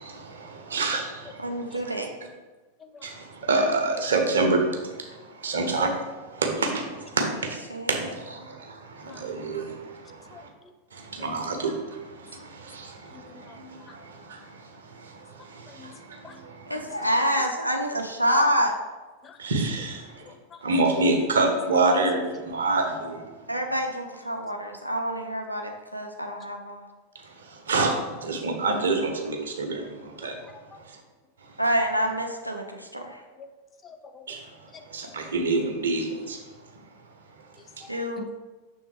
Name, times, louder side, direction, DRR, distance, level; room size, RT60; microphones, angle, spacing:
voice 1, 0.0-1.9 3.0-7.6 7.9-10.5 10.9-16.8 19.4-20.3 20.6-23.2 27.2-30.4 30.9-31.0 34.3-34.4 34.9-36.4, right 3 dB, 65° right, 3 dB, 1.0 m, -28 dB
voice 2, 1.4-2.2 7.2-7.3 7.7-8.1 16.7-18.8 23.5-26.9 31.6-33.2 37.9-38.3, equal, 90° right, 2 dB, 0.7 m, -27 dB
voice 3, 10.3-10.7 11.2-11.3 13.1-13.6 13.9-14.0 15.7-15.9 16.2-16.4 19.2-19.4 20.2-20.6 30.4-30.8 33.4-33.5 33.8-34.4 34.7-34.8 37.8-38.3, left 5 dB, 25° left, 7 dB, 0.6 m, -47 dB
6.4 x 3.5 x 4.7 m, 1.2 s
figure-of-eight pair, 90°, 0 cm